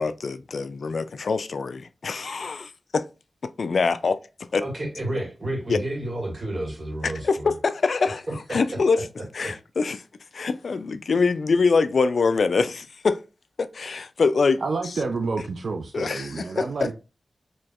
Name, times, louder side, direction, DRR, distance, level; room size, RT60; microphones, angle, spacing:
voice 1, 0.0-3.1 3.4-4.2 4.5-4.7 5.7-5.8 7.0-9.1 9.3-10.0 10.3-13.2 13.6-14.6 15.9-16.9, left 4 dB, 70° left, 0.3 m, -24 dB
voice 2, 4.6-7.5 8.3-8.6 9.4-9.5, right 1 dB, 45° right, 1.8 m, -31 dB
voice 3, 14.6-17.0, right 4 dB, 75° right, 0.4 m, -29 dB
4.2 x 3.0 x 2.3 m
wide cardioid pair, 120°, 0 cm